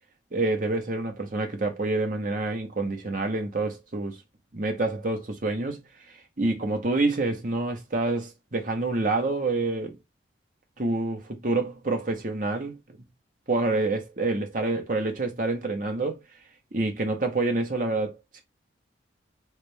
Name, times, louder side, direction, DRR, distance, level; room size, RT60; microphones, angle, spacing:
voice 1, 0.3-4.2 4.5-5.8 6.4-10.0 10.8-12.8 13.5-16.2 16.7-18.4, right 2 dB, 45° right, 1.1 m, -27 dB
3.3 x 3.3 x 3.3 m
head